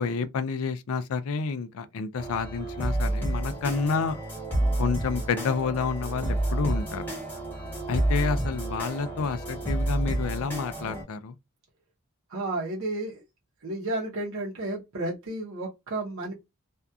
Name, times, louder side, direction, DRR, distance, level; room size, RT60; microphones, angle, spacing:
voice 1, 0.0-4.2 4.8-7.1 7.9-11.3, left 5 dB, 70° left, 0.4 m, -29 dB
sound 1, 2.2-11.0, right 1 dB, 10° left, 1.2 m, -30 dB
voice 2, 12.3-13.2 13.6-16.3, right 2 dB, 65° right, 0.8 m, -32 dB
2.6 x 2.3 x 2.3 m
head